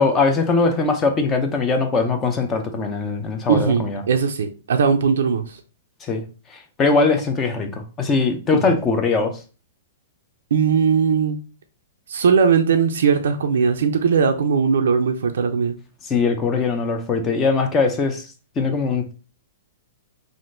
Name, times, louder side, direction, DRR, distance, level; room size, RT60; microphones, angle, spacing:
voice 1, 0.0-4.0 6.0-6.2 6.5-9.4 16.1-18.3 18.6-19.1, left 4 dB, 20° left, 0.4 m, -21 dB
voice 2, 3.5-5.6 8.5-8.8 10.5-11.4 12.1-15.8, right 6 dB, 80° right, 0.4 m, -19 dB
3.5 x 2.4 x 2.5 m
hypercardioid pair, 155°, 0 cm